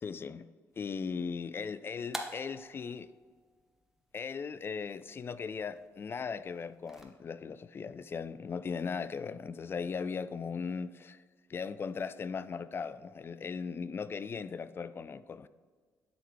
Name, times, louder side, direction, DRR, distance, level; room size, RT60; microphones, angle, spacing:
voice 1, 0.0-0.5 0.8-3.1 4.1-11.2 11.5-15.5, left 5 dB, 40° left, 0.3 m, -38 dB
sound 1, 0.7-7.0, equal, 5° right, 0.9 m, -49 dB
10.5 x 3.7 x 3.1 m
supercardioid pair, 70°, 6 cm